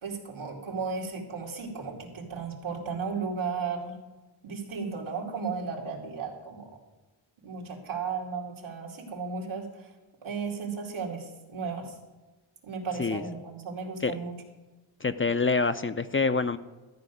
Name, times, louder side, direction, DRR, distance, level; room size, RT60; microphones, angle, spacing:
voice 1, 0.0-4.0 4.4-6.7 7.4-9.9 10.2-11.9 12.6-14.3, right 5 dB, 85° right, 0 dB, 2.7 m, -35 dB
voice 2, 15.0-16.6, left 4 dB, 25° left, 11 dB, 0.5 m, -26 dB
13.5 x 5.1 x 9.2 m, 1.2 s
wide cardioid pair, 115°, 47 cm